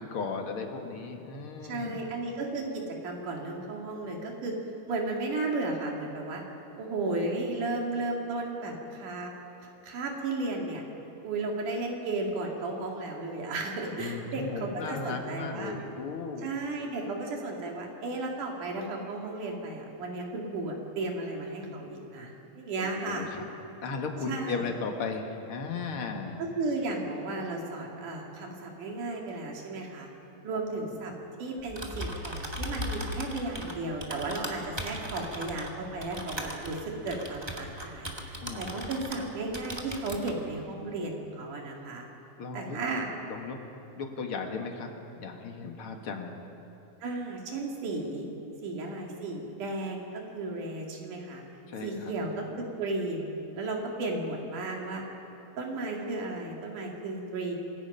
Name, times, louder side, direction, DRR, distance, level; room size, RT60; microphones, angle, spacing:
voice 1, 0.0-2.0 14.0-16.5 22.8-23.5 23.8-26.4 30.5-30.9 38.4-39.0 42.4-42.8 43.3-43.6 44.0-44.9 45.2-46.4 51.7-52.1, left 4 dB, 50° left, 3 dB, 2.3 m, -36 dB
voice 2, 1.6-4.5 4.9-6.4 6.8-9.3 9.8-10.8 11.2-15.7 16.4-23.3 24.3-24.7 26.4-30.1 30.4-31.1 31.4-42.1 42.5-43.1 47.0-48.3 48.6-51.4 51.8-53.3 53.6-55.0 55.6-57.5, right 2 dB, 80° right, 0 dB, 4.0 m, -34 dB
Typing, 31.6-39.3 39.5-40.4, equal, 15° right, 0.9 m, -38 dB
26.5 x 19.5 x 5.6 m, 2.9 s
omnidirectional pair, 3.5 m